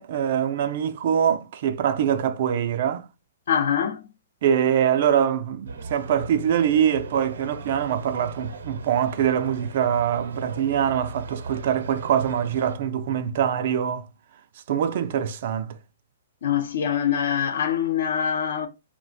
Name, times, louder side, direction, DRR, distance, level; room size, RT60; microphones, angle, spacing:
voice 1, 0.0-3.1 4.4-14.1 14.7-15.8, right 9 dB, 55° right, 0.3 m, -23 dB
voice 2, 3.5-4.1 16.4-18.7, left 8 dB, 65° left, 0.6 m, -24 dB
sound 1, 5.7-12.8, right 4 dB, 80° right, 0.7 m, -39 dB
2.4 x 2.1 x 3.7 m
hypercardioid pair, 140°, 0 cm